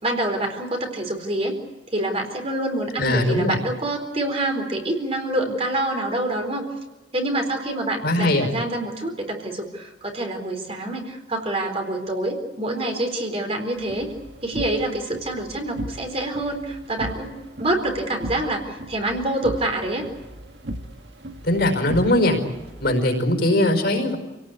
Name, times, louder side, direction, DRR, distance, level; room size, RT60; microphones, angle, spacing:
voice 1, 0.0-1.6 1.9-6.6 7.1-14.1 14.4-17.3 17.6-20.0, right 1 dB, 30° right, 3 dB, 4.1 m, -26 dB
voice 2, 3.0-3.6 8.0-8.5 21.4-22.4 22.8-24.2, left 1 dB, 50° left, 4 dB, 4.8 m, -20 dB
sound 1, 13.7-23.1, right 1 dB, 60° right, 1.9 m, -37 dB
28.0 x 18.0 x 8.5 m, 1.2 s
head